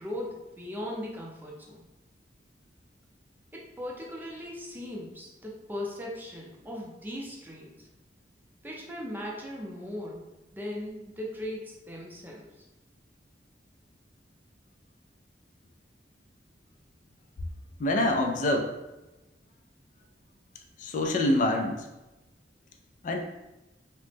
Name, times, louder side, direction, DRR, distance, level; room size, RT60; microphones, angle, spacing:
voice 1, 0.0-1.8 3.5-7.7 8.6-10.3 10.5-12.4, left 1 dB, 10° right, -2 dB, 0.5 m, -38 dB
voice 2, 17.8-18.7 20.8-21.9 23.0-23.2, left 1 dB, 45° left, 3 dB, 0.3 m, -25 dB
2.9 x 2.1 x 3.3 m, 1.0 s
head